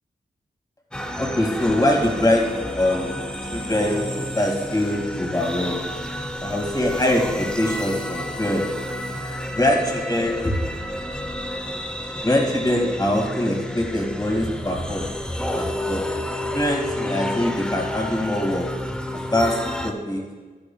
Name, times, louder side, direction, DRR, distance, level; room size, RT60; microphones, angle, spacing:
sound 1, 0.9-19.9, left 1 dB, 5° left, 0.8 m, -30 dB
voice 1, 1.2-2.4 2.7-3.2 3.5-5.8 6.4-8.7 9.5-10.5 12.1-15.1 15.6-16.0 16.5-18.7 19.1-20.2, left 1 dB, 25° left, 1 dB, 2.1 m, -23 dB
12.0 x 11.0 x 2.3 m, 1.3 s
cardioid pair, 70°, 17 cm